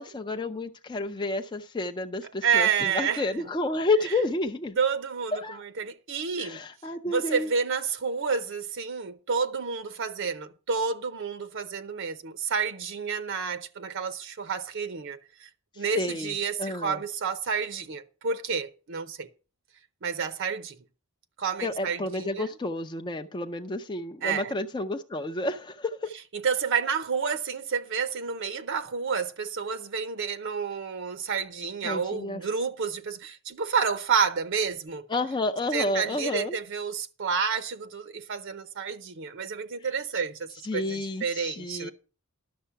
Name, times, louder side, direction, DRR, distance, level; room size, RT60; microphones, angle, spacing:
voice 1, 0.0-4.8 5.3-5.6 6.4-7.5 15.7-17.0 21.6-26.1 31.8-32.4 35.1-36.6 40.6-41.9, left 2 dB, 20° left, 0.5 m, -30 dB
voice 2, 2.4-3.3 4.8-6.6 7.0-15.5 15.8-19.3 20.0-20.8 21.4-22.5 24.2-24.5 26.3-35.1 35.7-41.9, right 6 dB, 60° right, 0.7 m, -30 dB
11.5 x 6.6 x 5.7 m
head